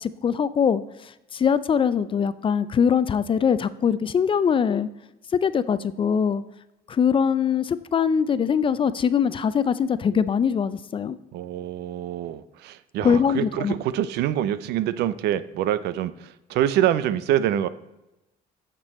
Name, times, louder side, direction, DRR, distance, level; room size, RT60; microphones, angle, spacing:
voice 1, 0.0-0.8 1.3-4.9 5.3-6.4 6.9-11.2 13.0-13.7, left 7 dB, 30° left, 15 dB, 0.4 m, -22 dB
voice 2, 11.3-17.7, right 11 dB, 80° right, 15 dB, 0.5 m, -25 dB
8.8 x 6.8 x 4.2 m, 0.95 s
cardioid pair, 110°, 17 cm